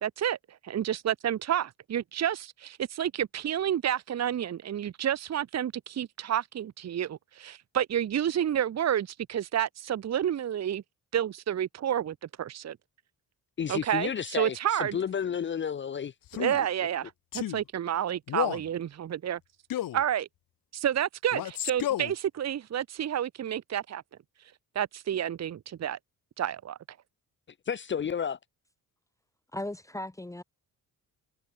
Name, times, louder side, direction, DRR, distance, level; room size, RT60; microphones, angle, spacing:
voice 1, 0.0-10.8 11.1-12.8 13.7-15.0 16.3-19.4 19.9-20.3 20.7-24.0 24.7-26.0 26.4-26.8, right 10 dB, 50° right, 1.2 m, -30 dB
voice 2, 13.6-16.1 27.7-28.4, left 7 dB, 35° left, 0.6 m, -31 dB
Male speech man speaking, 16.3-16.6 17.3-17.6 18.3-18.7 19.7-20.0 21.3-22.1, left 12 dB, 70° left, 1.4 m, -31 dB
voice 3, 29.5-30.4, left 1 dB, 10° left, 1.6 m, -37 dB
wide cardioid pair, 155°, 35 cm